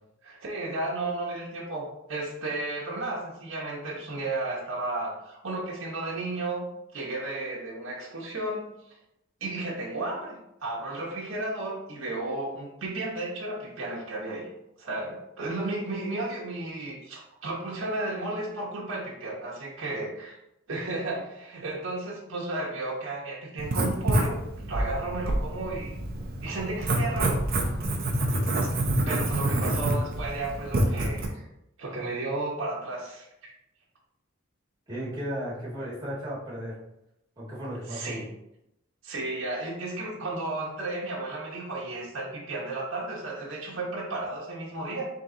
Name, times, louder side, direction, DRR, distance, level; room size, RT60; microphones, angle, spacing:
voice 1, 0.2-6.6 6.9-8.7 9.4-14.5 14.8-20.4 20.7-25.9 26.4-27.4 28.6-28.7 29.0-31.5 31.8-33.5 37.9-38.3 39.0-45.1, right 2 dB, 80° right, -5 dB, 1.0 m, -33 dB
Writing, 23.6-31.3, right 1 dB, 45° right, 0.6 m, -27 dB
voice 2, 34.9-36.8 37.4-38.2, equal, 20° right, -8 dB, 1.6 m, -35 dB
3.8 x 2.9 x 3.8 m, 0.86 s
head